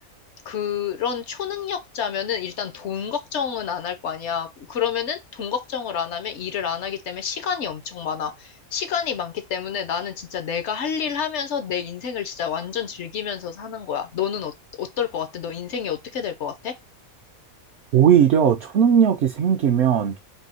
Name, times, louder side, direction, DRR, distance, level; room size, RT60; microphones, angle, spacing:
voice 1, 0.5-16.8, left 8 dB, 60° left, 0.8 m, -29 dB
voice 2, 17.9-20.2, right 8 dB, 65° right, 0.7 m, -17 dB
3.5 x 2.7 x 4.1 m
omnidirectional pair, 1.5 m